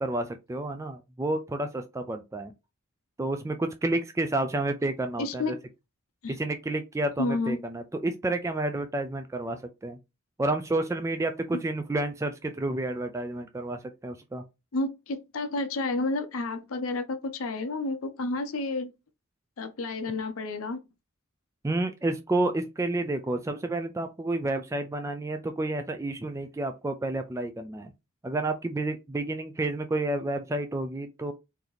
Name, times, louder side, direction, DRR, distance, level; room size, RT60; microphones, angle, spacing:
voice 1, 0.0-2.5 3.2-5.6 6.3-10.0 10.4-14.4 21.6-27.9 28.2-31.3, right 2 dB, 15° right, 0.3 m, -30 dB
voice 2, 5.2-5.6 6.2-6.4 7.2-7.6 14.7-18.9 19.6-20.8, left 2 dB, 75° left, 0.6 m, -30 dB
3.9 x 2.8 x 3.1 m
head